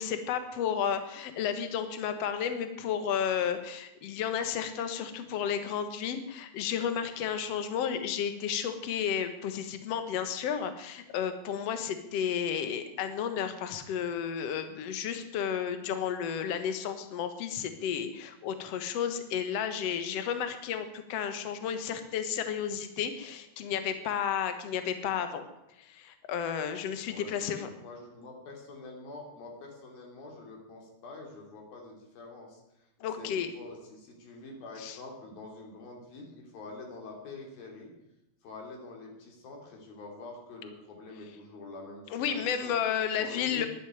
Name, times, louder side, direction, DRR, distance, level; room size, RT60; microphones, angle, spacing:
voice 1, 0.0-25.4 25.8-27.7 33.0-33.5 34.8-35.0 42.1-43.7, left 8 dB, 55° left, 9 dB, 1.9 m, -32 dB
voice 2, 27.0-32.9 33.2-37.9 38.4-42.8 43.2-43.7, left 3 dB, 75° left, 0 dB, 4.7 m, -46 dB
11.5 x 10.5 x 9.4 m, 0.90 s
omnidirectional pair, 4.3 m